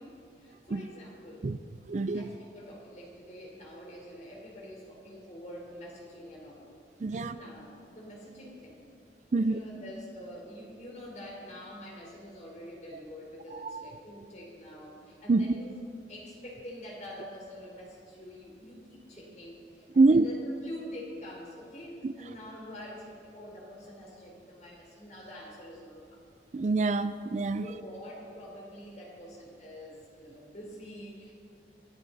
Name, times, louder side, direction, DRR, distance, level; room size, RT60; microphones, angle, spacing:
voice 1, 0.0-1.5 2.1-6.7 7.1-8.8 9.3-15.8 16.1-26.2 27.6-31.3, equal, 40° left, 4.0 m, -46 dB
voice 2, 1.9-2.3 7.0-7.3 9.3-9.6 13.5-13.9 15.3-15.5 20.0-20.3 22.0-22.1 26.5-27.7, right 3 dB, 40° right, 0.4 m, -25 dB
25.5 x 10.5 x 4.1 m
head